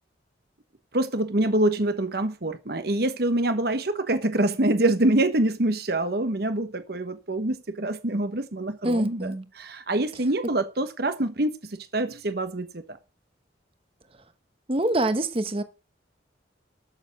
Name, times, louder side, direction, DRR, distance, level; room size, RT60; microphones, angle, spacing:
voice 1, 0.9-13.0, right 1 dB, 55° right, 1.2 m, -25 dB
voice 2, 8.8-9.4 14.7-15.6, right 1 dB, 30° right, 1.1 m, -25 dB
13.0 x 6.8 x 6.0 m
head